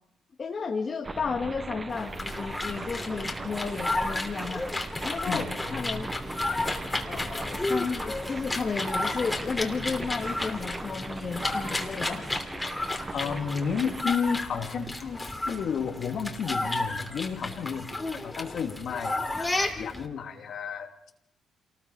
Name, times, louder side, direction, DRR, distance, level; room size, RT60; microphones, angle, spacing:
voice 1, 0.4-4.7 5.0-6.1 7.1-12.2, left 5 dB, 40° left, 1 dB, 2.2 m, -33 dB
sound 1, 1.0-17.9, right 3 dB, 20° right, 0.9 m, -40 dB
sound 2, 1.9-20.1, left 2 dB, 15° left, 3.0 m, -33 dB
voice 2, 13.1-21.1, left 6 dB, 65° left, 3 dB, 2.8 m, -32 dB
27.5 x 19.5 x 5.0 m, 0.73 s
cardioid pair, 90°, 0 cm